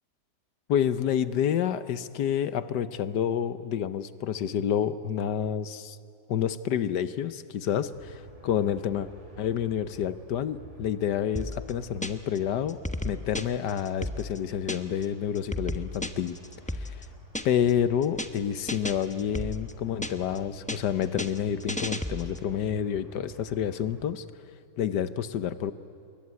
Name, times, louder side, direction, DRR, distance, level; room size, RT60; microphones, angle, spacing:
voice 1, 0.7-6.0 6.3-9.1 9.4-16.4 16.8-16.9 17.4-24.2 24.8-25.7, left 9 dB, 75° left, 14 dB, 1.5 m, -29 dB
sound 1, 7.9-24.1, right 2 dB, 40° right, 2.8 m, -50 dB
sound 2, 11.4-12.4 12.7-15.1 15.4-17.7 18.0-18.4 18.7-20.4 20.7-22.5, left 1 dB, 5° left, 0.6 m, -34 dB
27.5 x 22.5 x 9.6 m, 2.5 s
omnidirectional pair, 1.9 m